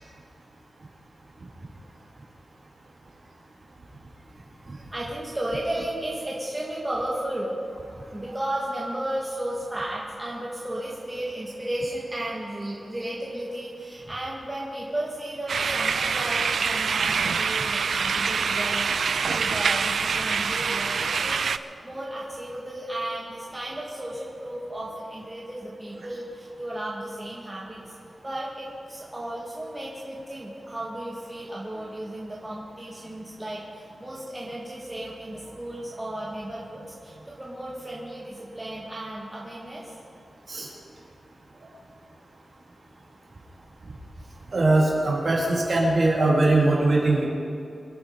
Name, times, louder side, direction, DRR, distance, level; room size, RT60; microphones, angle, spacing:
voice 1, 4.9-7.6 8.1-27.8 28.2-40.0, right 1 dB, 15° right, -5 dB, 2.0 m, -34 dB
sound 1, 15.5-21.6, right 5 dB, 65° right, 0.5 m, -25 dB
voice 2, 44.5-47.2, right 2 dB, 45° right, -4 dB, 3.9 m, -21 dB
25.5 x 9.0 x 5.2 m, 2.5 s
wide cardioid pair, 165°, 0 cm